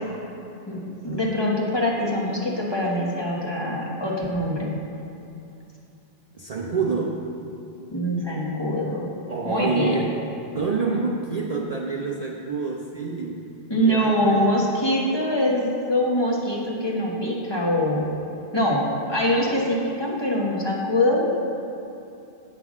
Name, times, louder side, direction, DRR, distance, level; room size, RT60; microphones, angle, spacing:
voice 1, 1.0-4.7 7.9-9.1 9.4-9.9 13.7-18.0 18.5-21.2, left 1 dB, 25° left, -4 dB, 1.3 m, -23 dB
voice 2, 6.3-7.2 9.3-10.2 10.5-13.5 13.7-14.5, right 4 dB, 45° right, -1 dB, 0.6 m, -27 dB
8.9 x 5.8 x 6.2 m, 2.7 s
omnidirectional pair, 1.1 m